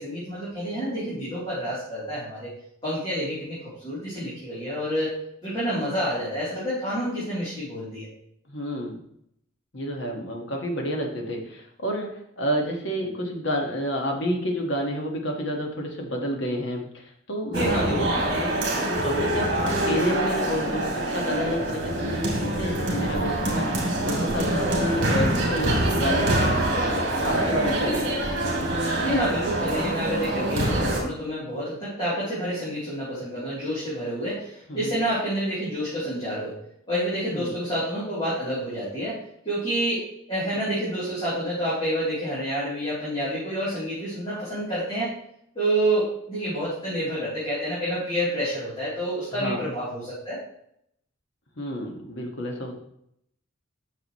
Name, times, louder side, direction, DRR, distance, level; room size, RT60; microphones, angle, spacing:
voice 1, 0.0-2.5 2.8-5.1 5.4-8.1 17.5-18.4 27.6-28.2 29.0-36.6 36.9-39.2 39.4-45.1 45.5-50.4, right 1 dB, 25° left, -10 dB, 3.3 m, -28 dB
voice 2, 8.5-9.0 9.7-17.7 18.3-28.0 34.7-34.9 37.3-37.6 49.4-49.7 51.6-52.8, equal, 60° left, 1 dB, 1.7 m, -30 dB
sound 1, 17.5-31.0, right 1 dB, 55° right, 2.7 m, -25 dB
9.7 x 6.5 x 3.1 m, 0.73 s
head